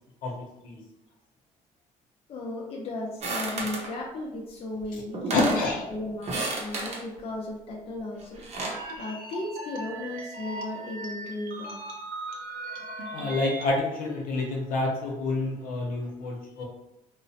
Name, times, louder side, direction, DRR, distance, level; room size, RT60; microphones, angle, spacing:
voice 1, 2.3-5.6 5.9-11.8 13.6-13.7, left 2 dB, 40° left, -2 dB, 0.6 m, -36 dB
sound 1, 3.2-3.9 4.8-4.9 5.1-5.7 6.2-7.0 8.2-8.8, right 2 dB, 50° right, 0.7 m, -31 dB
voice 2, 5.3-5.8 13.1-16.6, left 2 dB, 75° left, -1 dB, 0.8 m, -28 dB
sound 2, 8.7-13.8, right 2 dB, 90° right, 0.6 m, -38 dB
3.0 x 2.0 x 2.7 m, 0.90 s
cardioid pair, 115°, 15 cm